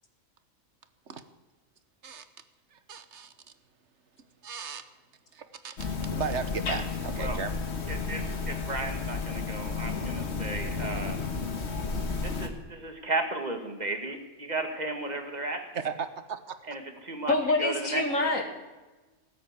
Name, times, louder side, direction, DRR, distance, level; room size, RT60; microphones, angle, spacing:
voice 1, 2.7-3.3 4.4-4.8 5.3-7.5 15.7-16.6, right 6 dB, 60° right, 11 dB, 1.4 m, -36 dB
sound 1, 5.8-12.5, left 4 dB, 55° left, 1.9 m, -32 dB
voice 2, 7.9-11.2 12.2-15.6 16.7-17.3 17.6-18.4, right 2 dB, 30° right, 6 dB, 2.0 m, -34 dB
voice 3, 17.3-18.4, left 2 dB, 75° left, 4 dB, 2.6 m, -26 dB
18.5 x 8.3 x 8.2 m, 1.1 s
omnidirectional pair, 1.4 m